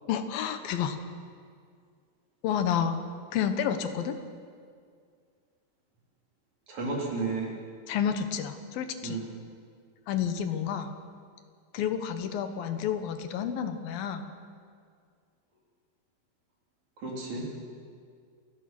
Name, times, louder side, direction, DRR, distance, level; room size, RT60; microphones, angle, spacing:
voice 1, 0.1-1.0 2.4-3.0 3.3-4.2 7.9-9.2 10.1-10.9 11.7-14.3, left 8 dB, 85° left, 8 dB, 3.0 m, -30 dB
voice 2, 6.7-7.6 9.0-9.4 17.0-17.6, right 3 dB, 55° right, -2 dB, 4.8 m, -33 dB
28.5 x 18.0 x 6.1 m, 2.2 s
omnidirectional pair, 4.1 m